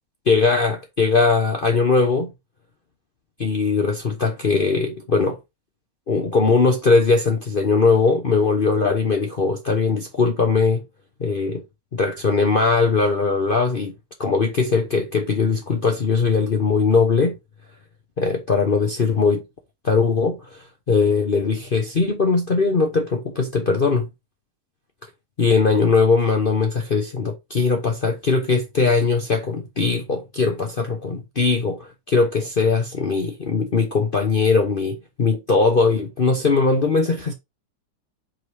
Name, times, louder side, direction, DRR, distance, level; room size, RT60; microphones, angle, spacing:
voice 1, 0.3-2.3 3.4-5.4 6.1-10.8 11.2-11.6 11.9-13.9 14.2-17.4 18.2-19.4 19.8-24.1 25.4-37.3, left 4 dB, 40° left, 0.9 m, -20 dB
5.0 x 4.0 x 4.8 m
omnidirectional pair, 1.9 m